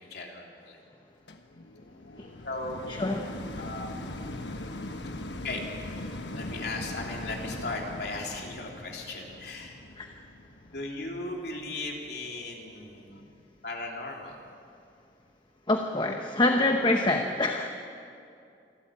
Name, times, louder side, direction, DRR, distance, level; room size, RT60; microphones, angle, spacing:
voice 1, 0.1-0.8 2.4-2.8 3.6-3.9 5.4-5.6 6.3-9.8 10.7-13.2 13.6-14.4, left 2 dB, 65° left, 0 dB, 3.5 m, -37 dB
sound 1, 1.3-12.5 13.1-13.2, left 1 dB, 85° left, 1.3 m, -40 dB
voice 2, 15.7-17.7, left 2 dB, 25° left, 4 dB, 0.9 m, -25 dB
27.0 x 13.0 x 8.8 m, 2.5 s
head